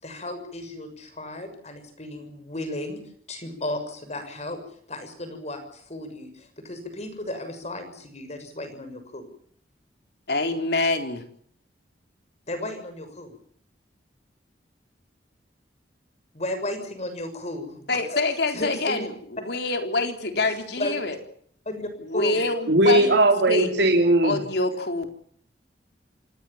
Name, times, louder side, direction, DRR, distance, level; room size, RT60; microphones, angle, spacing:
voice 1, 0.0-3.0 3.3-4.6 4.9-9.3 12.5-13.3 16.3-18.2 18.5-19.1 20.4-21.0 21.6-22.5, left 1 dB, 40° left, 9 dB, 6.6 m, -34 dB
voice 2, 10.3-11.2 17.9-19.1 19.4-21.2 22.0-23.9 24.2-25.1, left 2 dB, 65° left, 6 dB, 3.9 m, -26 dB
voice 3, 22.7-24.4, right 1 dB, 70° right, 3 dB, 3.1 m, -18 dB
28.0 x 19.0 x 7.3 m, 0.64 s
head